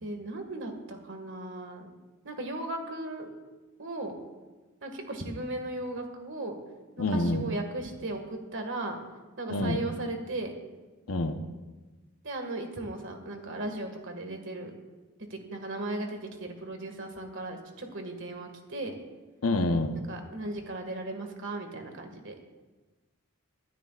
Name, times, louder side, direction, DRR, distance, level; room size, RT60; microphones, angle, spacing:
voice 1, 0.0-1.9 2.2-3.3 3.8-4.2 4.8-6.6 7.0-9.0 9.4-10.6 12.2-14.7 15.2-19.0 20.1-22.3, right 2 dB, 60° right, 4 dB, 2.0 m, -36 dB
voice 2, 7.0-7.4 9.5-9.8 11.1-11.4 19.4-19.9, left 2 dB, 80° left, 6 dB, 1.1 m, -27 dB
24.5 x 12.0 x 2.5 m, 1.2 s
head